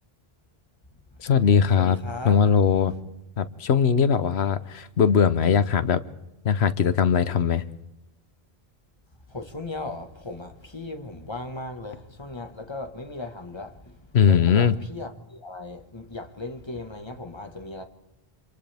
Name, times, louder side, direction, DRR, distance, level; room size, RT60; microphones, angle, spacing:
voice 1, 1.2-2.0 2.2-2.9 3.4-6.0 6.4-7.6 14.1-14.7, left 7 dB, 90° left, 1.2 m, -20 dB
voice 2, 1.8-2.4 9.3-17.8, left 2 dB, 25° left, 1.6 m, -37 dB
28.0 x 27.0 x 3.5 m
omnidirectional pair, 1.0 m